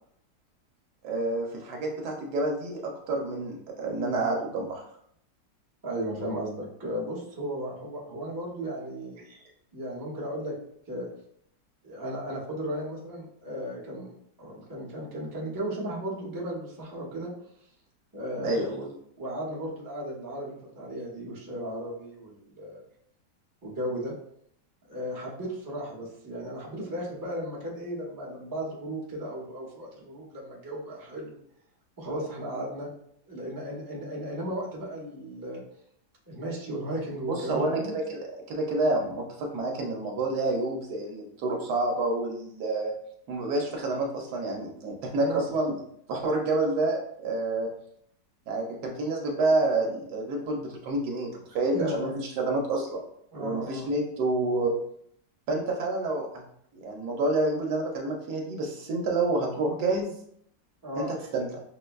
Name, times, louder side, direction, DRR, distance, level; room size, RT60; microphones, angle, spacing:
voice 1, 1.0-4.8 9.3-9.4 18.4-18.7 37.3-38.2 38.5-42.9 43.3-45.7 46.1-47.7 48.5-53.0 53.4-54.7 55.5-56.4 56.7-60.1 60.9-61.5, right 2 dB, 70° right, 0 dB, 1.1 m, -28 dB
voice 2, 5.8-9.2 9.7-10.5 10.9-11.1 11.8-14.1 14.4-17.3 18.1-18.9 19.2-22.8 23.6-24.1 24.9-31.4 32.0-32.9 33.3-35.6 36.3-37.9 45.1-45.5 51.7-52.1 53.3-53.9 60.8-61.1, right 1 dB, 25° right, -4 dB, 0.5 m, -35 dB
6.2 x 2.2 x 2.2 m, 0.70 s
omnidirectional pair, 1.9 m